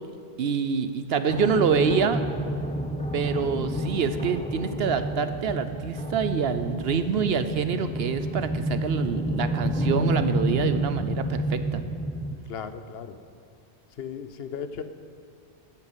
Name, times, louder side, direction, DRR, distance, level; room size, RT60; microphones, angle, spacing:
voice 1, 0.4-2.2 3.1-11.8, right 6 dB, 70° right, 11 dB, 0.9 m, -26 dB
sound 1, 1.3-12.4, equal, 10° left, 0.7 m, -29 dB
voice 2, 12.5-13.2 14.0-14.8, left 7 dB, 70° left, 10 dB, 1.0 m, -36 dB
13.0 x 8.8 x 8.1 m, 2.2 s
omnidirectional pair, 1.1 m